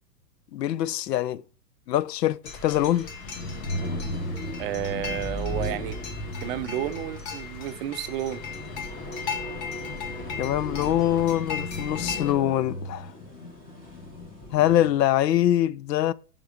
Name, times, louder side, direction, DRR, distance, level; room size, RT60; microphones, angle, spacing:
voice 1, 0.5-1.4 1.9-3.1 10.4-13.1 14.5-16.1, left 12 dB, 85° left, 0.6 m, -24 dB
sound 1, 2.4-12.3, left 5 dB, 40° left, 1.4 m, -38 dB
sound 2, 3.1-15.1, left 1 dB, 20° left, 1.7 m, -36 dB
voice 2, 4.6-6.0 6.4-8.4, right 12 dB, 40° right, 0.5 m, -31 dB
5.3 x 4.8 x 5.0 m
hypercardioid pair, 125°, 48 cm